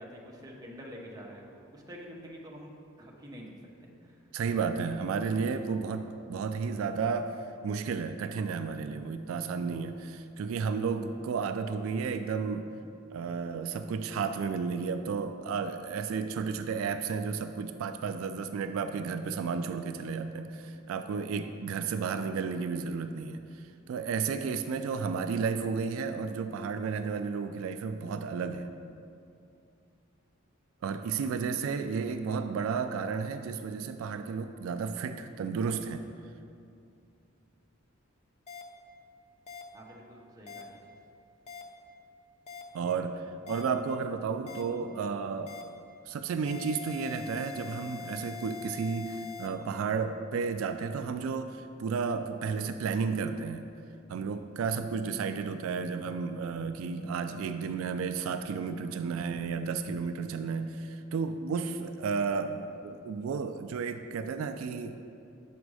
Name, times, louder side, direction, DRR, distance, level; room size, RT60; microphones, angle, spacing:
voice 1, 0.0-2.7 3.0-4.2 31.6-31.9 39.7-40.8, equal, 20° right, -2 dB, 0.8 m, -47 dB
voice 2, 4.3-12.7 13.1-28.7 30.8-36.0 42.7-45.6 46.1-53.7 54.1-65.1, right 5 dB, 80° right, 9 dB, 0.3 m, -32 dB
sound 1, 38.5-38.6 39.5-39.6 40.5-40.6 41.5-41.6 42.5-42.6 43.5-43.6 44.5-44.6 45.5-45.6 46.5-49.5, left 7 dB, 35° left, 0.6 m, -43 dB
6.3 x 5.0 x 4.8 m, 2.5 s
head